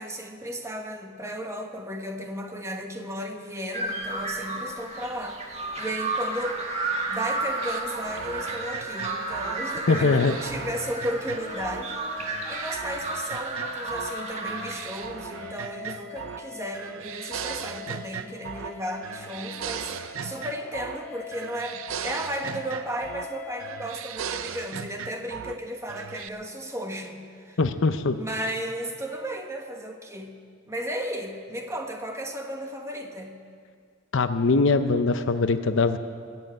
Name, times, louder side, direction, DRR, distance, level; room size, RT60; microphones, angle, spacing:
voice 1, 0.0-6.6 7.1-27.2 27.5-27.6 28.1-30.3 30.7-33.3, equal, 15° right, 3 dB, 1.2 m, -34 dB
sound 1, 3.7-14.7, right 2 dB, 30° right, 1.8 m, -32 dB
sound 2, 5.6-24.0, left 3 dB, 10° left, 1.8 m, -44 dB
sound 3, 7.6-11.9 12.2-14.2 14.5-16.5 16.7-18.8 19.0-21.1 21.3-23.3 23.6-25.6 25.9-26.3, right 7 dB, 75° right, 0.6 m, -37 dB
voice 2, 9.9-10.4 27.6-28.2 34.1-36.0, left 3 dB, 60° left, 10 dB, 0.6 m, -22 dB
21.0 x 7.7 x 8.8 m, 2.1 s
head